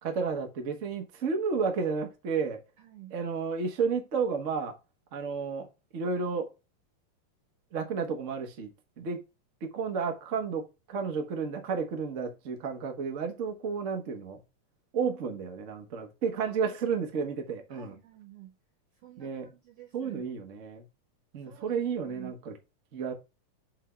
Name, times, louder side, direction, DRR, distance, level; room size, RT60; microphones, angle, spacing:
voice 1, 0.0-2.6 3.1-4.8 5.1-6.5 7.7-9.2 9.6-14.4 14.9-17.9 19.2-19.4 19.9-20.8 21.3-22.5 22.9-23.1, right 5 dB, 80° right, 0.6 m, -32 dB
voice 2, 2.8-3.2 16.4-16.8 17.7-18.6 18.9-20.3 21.4-22.4, right 13 dB, 65° right, 1.7 m, -50 dB
7.6 x 3.5 x 4.4 m
omnidirectional pair, 3.5 m